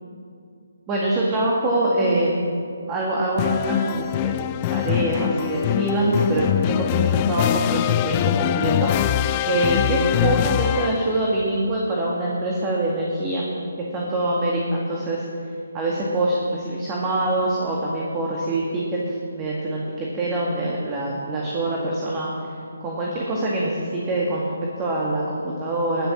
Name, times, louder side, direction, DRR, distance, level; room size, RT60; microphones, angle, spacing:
voice 1, 0.9-2.5 2.9-8.9 9.5-13.4 13.9-15.2 15.7-22.3 22.8-26.1, right 1 dB, 20° right, -4 dB, 2.0 m, -24 dB
sound 1, 3.4-11.2, left 13 dB, 25° left, 0.3 m, -23 dB
20.5 x 7.0 x 7.4 m, 2.4 s
figure-of-eight pair, 145°, 0 cm